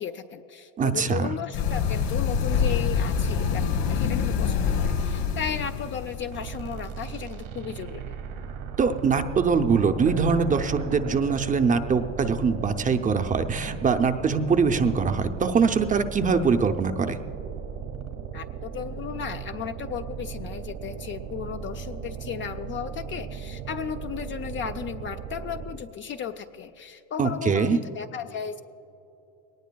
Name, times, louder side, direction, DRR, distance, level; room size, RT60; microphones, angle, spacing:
voice 1, 0.0-3.6 3.9-8.2 18.3-28.6, left 7 dB, 30° left, 7 dB, 0.4 m, -35 dB
voice 2, 0.8-1.3 8.8-17.2 27.2-27.8, right 5 dB, 20° right, 8 dB, 0.5 m, -23 dB
sound 1, 1.5-6.5, left 6 dB, 65° left, 3.0 m, -25 dB
sound 2, 6.3-25.9, right 7 dB, 85° right, 1.7 m, -37 dB
sound 3, 10.1-13.3 13.7-13.8 14.0-14.1, right 7 dB, 65° right, 1.1 m, -39 dB
21.0 x 18.5 x 2.3 m, 2.9 s
supercardioid pair, 120°, 38 cm